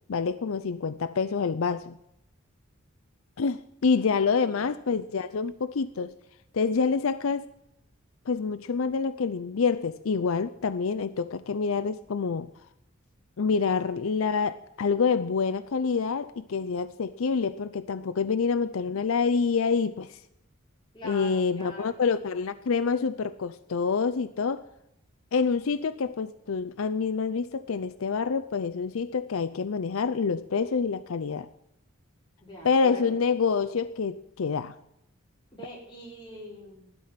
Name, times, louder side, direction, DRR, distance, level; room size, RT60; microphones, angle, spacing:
voice 1, 0.1-1.9 3.4-6.1 6.5-7.5 8.3-12.5 13.4-20.2 21.0-24.6 25.3-31.5 32.6-34.8, left 5 dB, 75° left, 13 dB, 0.5 m, -27 dB
voice 2, 4.2-4.7 20.9-22.0 32.4-33.1 35.5-36.9, equal, 20° left, -4 dB, 4.6 m, -43 dB
14.5 x 12.0 x 5.8 m, 0.81 s
head